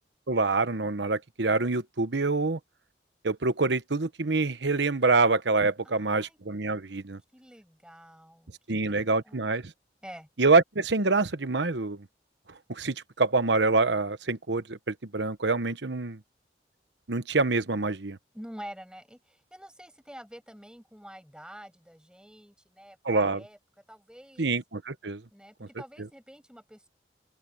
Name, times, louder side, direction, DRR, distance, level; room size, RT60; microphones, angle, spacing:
voice 1, 0.3-2.6 3.2-7.2 8.7-9.7 10.4-12.0 12.7-16.2 17.1-18.2 23.0-23.4 24.4-25.2 25.6-25.7, right 3 dB, 80° right, 1.1 m, -26 dB
voice 2, 5.8-6.4 7.3-8.8 9.2-9.5 10.0-10.3 18.3-23.6 23.9-24.5 25.3-26.9, equal, 5° right, 6.4 m, -47 dB
open air
head